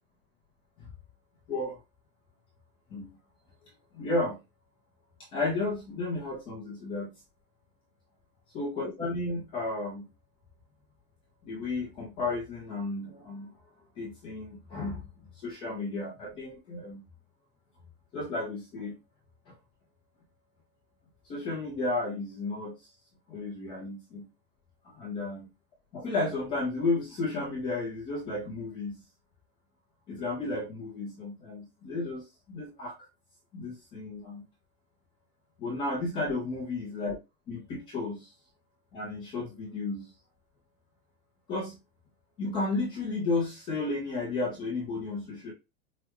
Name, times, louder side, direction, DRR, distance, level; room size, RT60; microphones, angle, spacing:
voice 1, 1.5-1.8 2.9-3.1 3.9-4.4 5.3-7.1 8.5-10.1 11.4-13.5 14.0-15.1 15.4-17.0 18.1-18.9 19.5-19.6 21.3-22.8 23.3-24.3 24.8-25.5 25.9-29.0 30.1-33.1 33.5-34.4 35.6-37.2 37.5-38.3 38.9-40.1 41.5-41.8 42.4-45.5, left 2 dB, 10° left, -2 dB, 0.4 m, -33 dB
4.8 x 2.1 x 2.9 m, 0.24 s
supercardioid pair, 155°, 47 cm